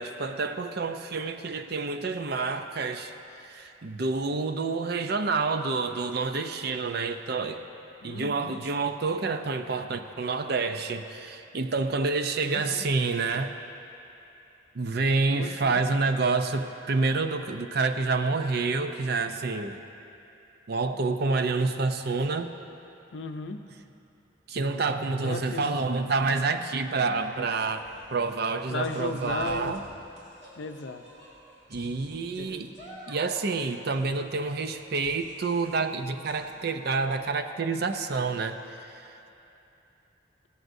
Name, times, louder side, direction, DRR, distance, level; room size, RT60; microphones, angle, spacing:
voice 1, 0.0-3.1 3.4-7.6 8.0-13.6 14.7-19.8 20.7-22.5 24.5-27.8 28.1-29.8 31.7-32.7 33.1-39.0, right 4 dB, 60° right, 8 dB, 0.6 m, -28 dB
voice 2, 8.0-8.6 12.4-12.8 15.3-15.8 23.1-23.7 25.2-25.7 28.7-29.8 30.6-31.0 32.4-32.7, left 4 dB, 75° left, 7 dB, 0.6 m, -36 dB
sound 1, 27.2-37.3, equal, 40° right, 2.6 m, -51 dB
16.5 x 14.0 x 2.7 m, 2.8 s
head